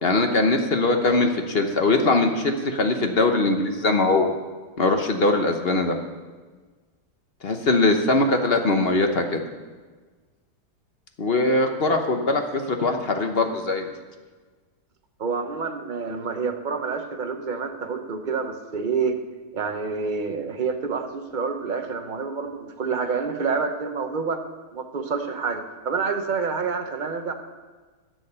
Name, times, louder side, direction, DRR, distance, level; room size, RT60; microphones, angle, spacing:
voice 1, 0.0-4.4 4.8-6.0 7.4-9.4 11.2-13.9, left 2 dB, 40° left, 5 dB, 1.0 m, -21 dB
voice 2, 15.2-19.2 19.5-24.4 24.7-27.3, right 5 dB, 35° right, 5 dB, 0.9 m, -28 dB
12.5 x 7.8 x 6.8 m, 1.4 s
omnidirectional pair, 1.8 m